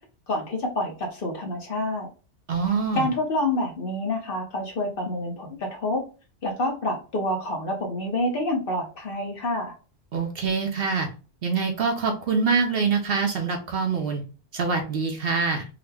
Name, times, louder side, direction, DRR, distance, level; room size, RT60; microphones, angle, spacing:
voice 1, 0.3-2.1 2.9-6.0 6.4-9.7, left 1 dB, 50° left, 1 dB, 1.0 m, -27 dB
voice 2, 2.5-3.1 10.1-11.1 11.4-14.2 14.5-15.7, right 5 dB, 60° right, 4 dB, 0.8 m, -25 dB
3.7 x 2.2 x 3.3 m, 0.34 s
omnidirectional pair, 1.3 m